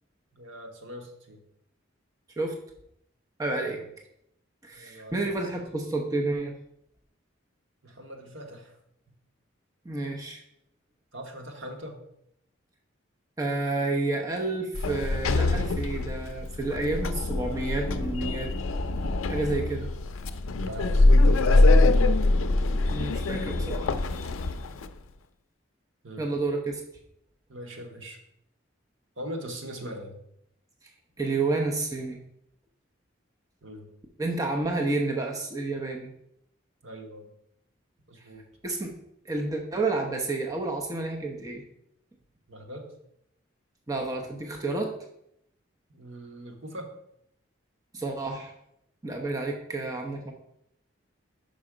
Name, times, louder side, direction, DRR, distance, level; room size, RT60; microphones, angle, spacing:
voice 1, 0.3-1.4 3.7-3.9 4.7-5.4 7.8-8.8 11.1-12.0 20.7-22.0 26.0-26.3 27.5-28.2 29.2-30.2 33.6-33.9 36.8-37.3 38.1-38.4 42.5-42.9 45.9-46.9, equal, 75° right, 3 dB, 1.2 m, -41 dB
voice 2, 3.4-3.8 4.6-6.5 9.8-10.4 13.4-18.5 19.2-19.9 22.9-23.9 26.2-26.8 30.8-30.9 31.2-32.2 34.2-36.1 38.6-39.0 39.2-41.6 43.9-44.9 47.9-48.5 49.0-50.3, right 2 dB, 15° right, 1 dB, 0.7 m, -30 dB
Sliding door, 14.7-24.9, left 2 dB, 85° left, 0.4 m, -23 dB
5.5 x 5.2 x 4.9 m, 0.76 s
head